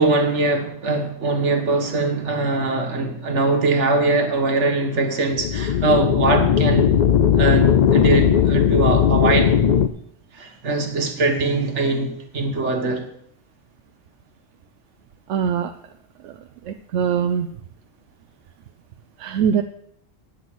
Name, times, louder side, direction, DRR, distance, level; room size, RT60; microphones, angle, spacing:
voice 1, 0.0-6.9 7.4-9.5 10.3-13.1, right 3 dB, 75° right, 1.7 m, -22 dB
sound 1, 5.3-9.9, left 8 dB, 60° left, 0.5 m, -17 dB
voice 2, 15.3-15.7 16.2-16.3 16.7-17.5 19.2-19.6, right 8 dB, 90° right, 1.0 m, -22 dB
9.5 x 7.5 x 6.1 m
omnidirectional pair, 1.2 m